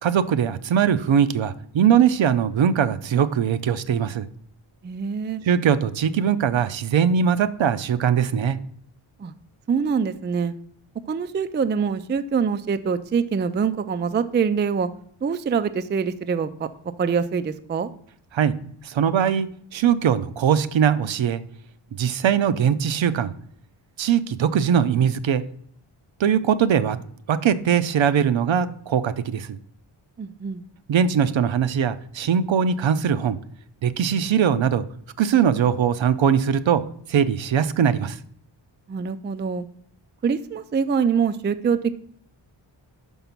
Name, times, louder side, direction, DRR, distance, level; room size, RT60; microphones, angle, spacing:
voice 1, 0.0-4.3 5.4-8.6 18.3-18.5 18.8-21.4 21.9-23.3 24.0-25.4 26.2-27.0 27.3-29.6 30.9-33.4 33.8-34.8 35.2-36.8 37.1-38.2, right 8 dB, 65° right, 12 dB, 0.6 m, -21 dB
voice 2, 4.8-5.4 9.2-9.3 9.7-10.5 11.1-14.9 15.2-16.7 17.0-17.9 30.2-30.6 38.9-39.7 40.2-41.9, right 6 dB, 25° right, 11 dB, 0.3 m, -24 dB
5.9 x 5.5 x 5.8 m, 0.62 s
wide cardioid pair, 110°, 49 cm